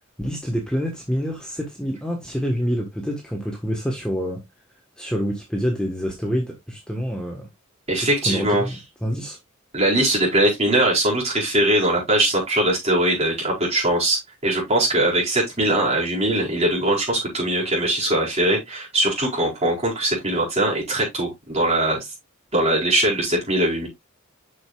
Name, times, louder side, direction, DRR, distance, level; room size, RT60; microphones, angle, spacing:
voice 1, 0.2-4.4 5.0-7.4 8.2-9.4, equal, 5° left, 1.3 m, -27 dB
voice 2, 7.9-8.7 9.7-22.0 22.5-23.9, right 1 dB, 30° right, 4.6 m, -21 dB
7.9 x 6.4 x 2.4 m
head